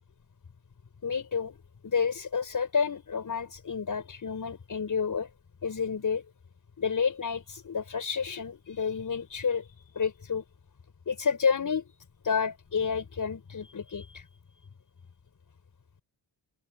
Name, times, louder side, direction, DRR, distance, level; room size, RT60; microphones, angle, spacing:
voice 1, 1.0-1.6 1.8-5.3 5.6-6.2 6.8-10.4 11.1-11.9 12.2-14.3, left 6 dB, 45° left, 6.9 m, -30 dB
wide cardioid pair, 135°, 44 cm